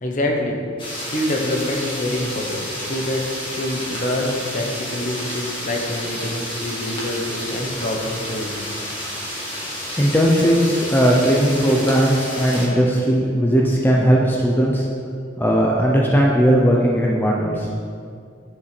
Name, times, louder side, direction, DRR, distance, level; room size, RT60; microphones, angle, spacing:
voice 1, 0.0-0.6 1.1-8.7, left 1 dB, 40° left, 1 dB, 0.9 m, -26 dB
sound 1, 0.8-12.7, left 1 dB, 25° left, 1.5 m, -30 dB
voice 2, 10.0-14.9 15.4-17.7, equal, 10° left, -3 dB, 0.6 m, -17 dB
9.5 x 5.4 x 3.3 m, 2.3 s
head